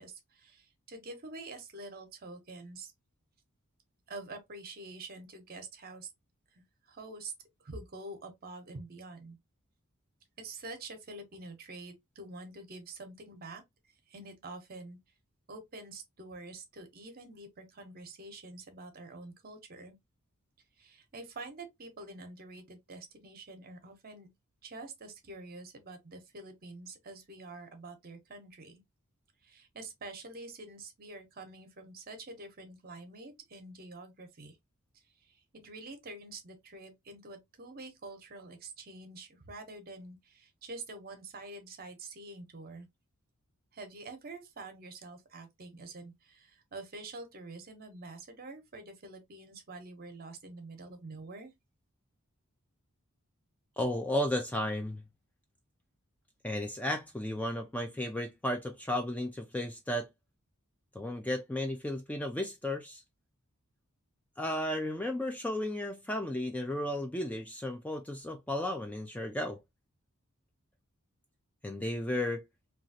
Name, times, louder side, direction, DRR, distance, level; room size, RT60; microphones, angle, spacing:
voice 1, 0.0-2.9 4.1-6.1 6.9-7.3 7.6-9.4 10.4-13.6 14.1-15.0 15.5-19.9 20.8-24.3 24.6-28.8 29.4-34.6 35.5-42.9 43.7-51.5, right 2 dB, 45° right, 0.8 m, -46 dB
voice 2, 53.8-55.0 56.4-60.1 60.9-63.0 64.4-69.6 71.6-72.4, left 1 dB, 5° left, 0.3 m, -34 dB
3.0 x 2.3 x 2.7 m
head